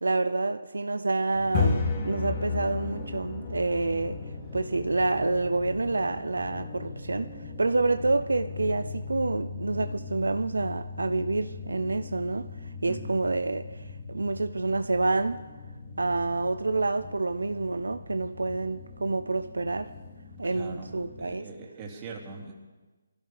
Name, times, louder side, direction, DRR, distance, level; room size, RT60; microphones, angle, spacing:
voice 1, 0.0-4.2 4.5-12.5 12.8-15.4 16.0-19.9 20.4-21.5, right 3 dB, 80° right, 0.6 m, -28 dB
sound 1, 1.3-21.2, left 4 dB, 30° left, 2.7 m, -36 dB
voice 2, 12.8-13.3 20.4-20.9 21.2-22.5, right 4 dB, 25° right, 3.0 m, -41 dB
24.5 x 15.5 x 3.5 m
figure-of-eight pair, 150°, 0 cm